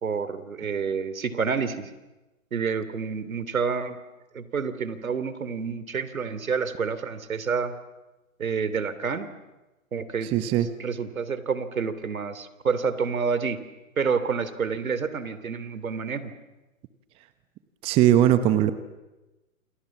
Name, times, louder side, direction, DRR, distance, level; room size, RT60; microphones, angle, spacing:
voice 1, 0.0-1.9 2.5-4.0 4.3-7.7 8.4-9.3 9.9-10.3 10.8-13.6 14.0-16.3, right 5 dB, 80° right, 13 dB, 3.1 m, -28 dB
voice 2, 10.3-10.7 17.8-18.7, right 12 dB, 15° right, 11 dB, 0.9 m, -19 dB
28.5 x 28.0 x 7.3 m, 1.1 s
hypercardioid pair, 150°, 41 cm